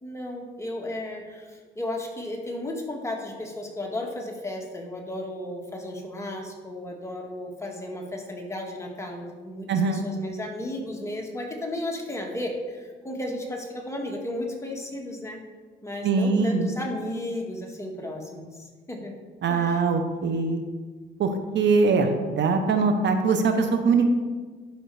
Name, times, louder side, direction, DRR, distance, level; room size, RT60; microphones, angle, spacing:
voice 1, 0.0-15.4 15.8-19.1 19.5-19.9, left 1 dB, 15° left, 0 dB, 2.0 m, -34 dB
voice 2, 9.7-10.0 16.0-16.7 19.4-20.6 21.2-24.1, right 4 dB, 65° right, 6 dB, 1.1 m, -22 dB
11.5 x 5.7 x 4.9 m, 1.5 s
cardioid pair, 90°, 20 cm